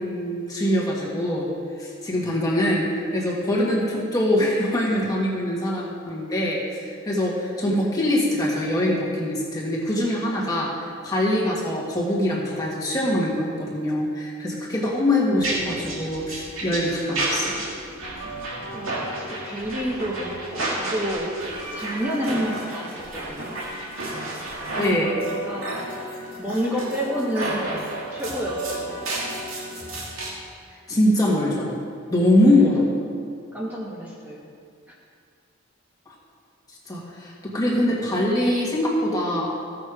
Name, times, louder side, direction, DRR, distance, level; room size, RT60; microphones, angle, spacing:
voice 1, 0.0-1.5 1.8-17.7 24.8-25.1 30.9-31.8 32.1-32.9 36.9-39.5, left 1 dB, 20° left, -4 dB, 1.8 m, -23 dB
sound 1, 15.4-30.3, right 2 dB, 90° right, 2.6 m, -31 dB
voice 2, 18.7-21.3 21.7-23.5 24.7-25.1 25.4-25.8 26.4-28.9 32.5-32.7 33.5-34.4 34.9-35.0, equal, 10° right, -6 dB, 1.4 m, -29 dB
15.5 x 6.5 x 4.9 m, 2.2 s
head